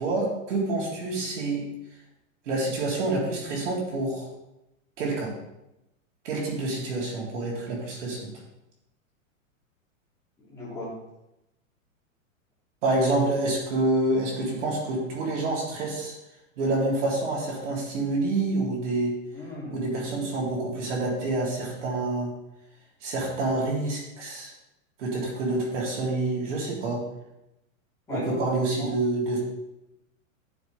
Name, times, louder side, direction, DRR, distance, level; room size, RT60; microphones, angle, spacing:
voice 1, 0.0-1.6 2.5-4.3 5.0-5.3 6.2-8.2 12.8-16.1 16.6-19.2 19.7-22.3 23.0-24.5 25.0-27.0 28.1-29.4, right 2 dB, 60° right, -4 dB, 3.8 m, -27 dB
voice 2, 10.4-11.0 19.3-19.9 28.1-28.4 28.8-28.9, left 2 dB, 5° left, -10 dB, 3.3 m, -37 dB
13.5 x 7.0 x 3.6 m, 0.90 s
supercardioid pair, 170°, 40 cm